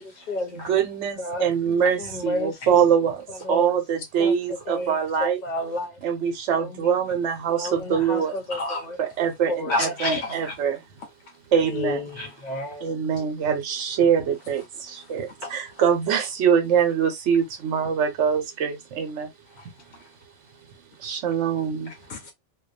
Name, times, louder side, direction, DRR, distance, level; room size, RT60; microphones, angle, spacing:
voice 1, 0.0-0.7 1.2-2.8 3.3-3.8 4.2-4.4 4.7-6.0 6.6-6.9 7.5-9.0 9.5-10.2 11.6-12.9, left 1 dB, 45° left, 0.8 m, -32 dB
voice 2, 0.5-5.4 6.0-8.3 9.0-10.8 11.5-12.0 12.8-19.3 21.0-21.9, right 7 dB, 75° right, 1.0 m, -24 dB
voice 3, 8.5-8.9 9.7-10.6 12.1-12.7 14.9-15.1 15.4-15.8 19.5-20.1 21.9-22.3, left 2 dB, 70° left, 0.9 m, -32 dB
2.5 x 2.2 x 2.4 m
omnidirectional pair, 1.2 m